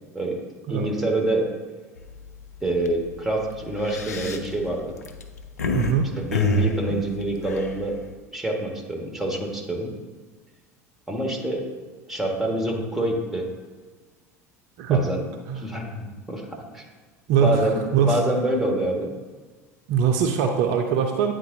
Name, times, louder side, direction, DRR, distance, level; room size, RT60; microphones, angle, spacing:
voice 1, 0.7-1.5 2.6-4.9 6.2-8.0 8.3-9.9 11.1-11.6 12.1-13.5 14.9-15.2 15.5-16.5 16.7-16.8 17.4-19.1, right 1 dB, ahead, 0 dB, 1.5 m, -26 dB
sound 1, 2.0-2.3 2.7-2.9 3.6-5.9 6.3-8.1, left 2 dB, 80° left, 0.5 m, -26 dB
voice 2, 5.7-6.1 14.8-15.1 15.5-15.6 17.3-18.2 19.9-21.3, right 6 dB, 55° right, 4 dB, 0.6 m, -22 dB
9.5 x 3.8 x 2.7 m, 1.4 s
figure-of-eight pair, 75°, 8 cm